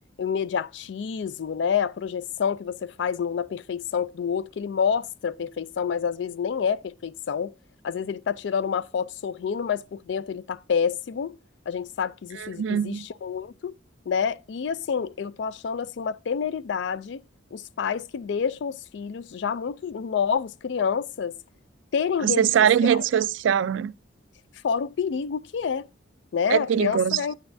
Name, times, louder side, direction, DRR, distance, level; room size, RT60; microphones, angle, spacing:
voice 1, 0.2-7.5 7.8-11.4 11.7-13.8 14.1-17.2 17.5-21.4 21.9-22.5 22.8-23.0 24.6-25.9 26.3-27.3, left 6 dB, 70° left, 0.4 m, -28 dB
voice 2, 12.4-13.1 22.2-23.9 26.5-27.2, right 8 dB, 75° right, 0.3 m, -22 dB
9.5 x 8.0 x 2.6 m
head